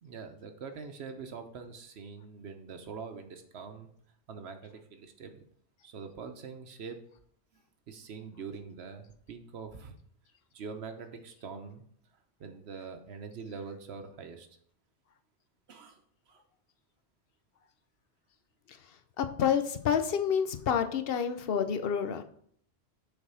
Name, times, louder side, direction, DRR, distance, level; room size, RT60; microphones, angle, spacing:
voice 1, 0.0-3.9 4.3-5.4 5.8-7.0 7.5-7.6 7.9-9.9 10.5-11.8 12.4-14.5 15.7-16.0 16.3-16.4, right 5 dB, 75° right, 7 dB, 1.1 m, -44 dB
voice 2, 19.2-22.2, left 8 dB, 65° left, 8 dB, 0.9 m, -28 dB
6.9 x 4.1 x 5.6 m, 0.64 s
omnidirectional pair, 1.1 m